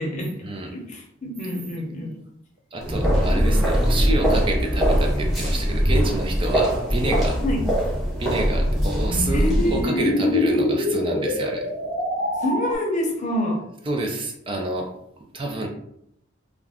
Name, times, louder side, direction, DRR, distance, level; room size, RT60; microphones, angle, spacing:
voice 1, 0.0-0.4 0.7-2.2 7.4-7.6 9.3-10.1 12.4-13.6, left 1 dB, 40° left, 0 dB, 0.6 m, -26 dB
voice 2, 2.7-7.4 8.2-11.7 13.9-14.9 15.3-15.7, right 2 dB, 25° right, 1 dB, 0.4 m, -28 dB
sound 1, 2.8-9.8, equal, ahead, 0.8 m, -21 dB
sound 2, 7.8-12.8, left 1 dB, 80° left, 0.7 m, -26 dB
2.4 x 2.1 x 3.4 m, 0.74 s
head